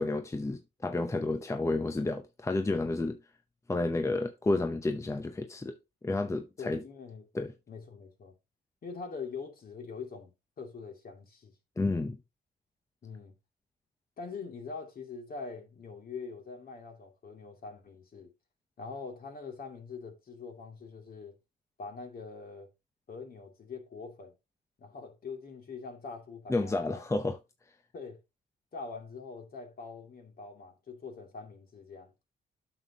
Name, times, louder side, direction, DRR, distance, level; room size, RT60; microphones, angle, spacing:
voice 1, 0.0-3.2 3.7-5.7 6.0-6.8 7.3-7.5 11.8-12.2 26.5-27.4, left 2 dB, 15° left, 0.7 m, -30 dB
voice 2, 6.6-7.2 7.7-8.3 8.8-11.5 13.0-13.4 14.2-18.3 18.8-21.3 21.8-22.7 23.1-24.4 24.8-27.0 27.9-28.2 28.7-32.1, left 4 dB, 50° left, 2.7 m, -43 dB
8.8 x 6.4 x 2.9 m
cardioid pair, 90°, 20 cm